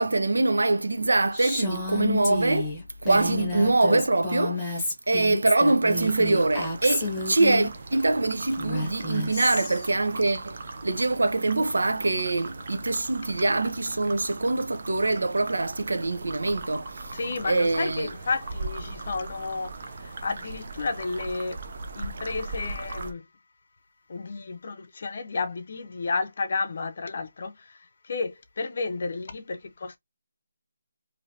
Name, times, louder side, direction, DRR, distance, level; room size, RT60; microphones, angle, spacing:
voice 1, 0.0-17.2 17.4-18.1, right 2 dB, 85° right, 0.6 m, -24 dB
Female speech woman speaking, 1.3-7.7 8.5-9.9, left 2 dB, 5° left, 0.9 m, -30 dB
sound 1, 5.9-23.1, right 3 dB, 35° right, 0.5 m, -39 dB
voice 2, 17.1-21.6 22.0-23.2 24.1-27.8 28.0-30.0, left 4 dB, 35° left, 0.5 m, -32 dB
3.2 x 2.6 x 2.7 m
figure-of-eight pair, 175°, 0 cm